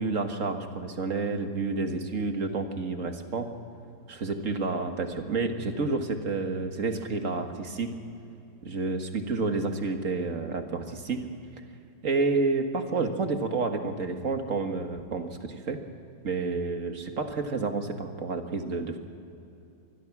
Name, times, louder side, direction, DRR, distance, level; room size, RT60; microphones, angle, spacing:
voice 1, 0.0-3.5 4.1-8.0 8.6-11.3 12.0-15.8 16.2-19.0, right 3 dB, 45° right, 5 dB, 1.9 m, -29 dB
26.0 x 21.0 x 6.1 m, 2.7 s
omnidirectional pair, 1.9 m